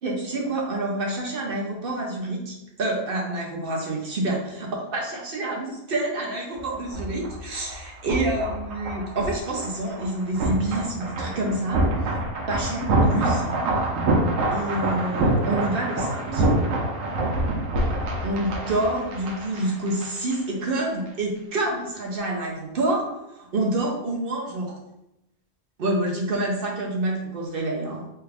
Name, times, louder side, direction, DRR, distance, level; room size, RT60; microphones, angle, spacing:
voice 1, 0.0-12.2 12.5-13.6 14.5-16.4 18.2-24.8 25.8-28.1, right 2 dB, 55° right, -1 dB, 0.7 m, -28 dB
sound 1, 6.6-20.4 20.6-20.8, right 2 dB, 90° right, 1.1 m, -26 dB
3.3 x 2.3 x 3.3 m, 0.86 s
omnidirectional pair, 1.3 m